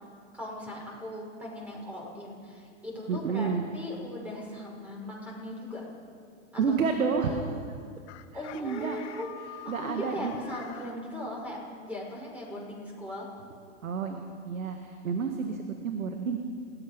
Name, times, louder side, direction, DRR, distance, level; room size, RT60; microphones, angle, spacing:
voice 1, 0.3-5.9 6.5-6.8 7.2-7.4 8.3-9.3 9.6-13.3, left 1 dB, 5° right, -3 dB, 6.2 m, -39 dB
voice 2, 3.1-3.7 6.6-7.3 8.3-9.0 9.7-10.3 13.8-16.4, right 5 dB, 85° right, 4 dB, 1.9 m, -30 dB
Chicken rooster, 8.1-11.0, left 13 dB, 55° left, 1.5 m, -46 dB
28.5 x 17.0 x 5.3 m, 2.2 s
hypercardioid pair, 115°, 40 cm